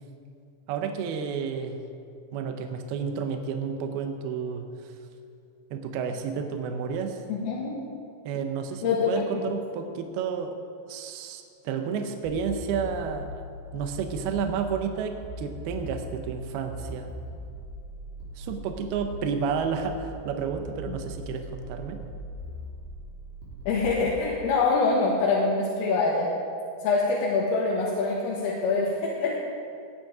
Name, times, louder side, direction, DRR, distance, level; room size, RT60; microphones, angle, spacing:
voice 1, 0.7-1.8 2.3-4.7 5.7-7.2 8.3-10.5 10.9-13.4 13.7-17.1 18.4-22.0, right 6 dB, 90° right, 5 dB, 2.2 m, -31 dB
voice 2, 7.3-7.9 8.8-9.1 20.9-21.0 23.7-26.3 26.8-29.4, left 4 dB, 80° left, -5 dB, 4.1 m, -25 dB
sound 1, 12.2-24.2, equal, 75° right, 5.5 m, -40 dB
20.5 x 9.3 x 4.9 m, 2.5 s
omnidirectional pair, 5.9 m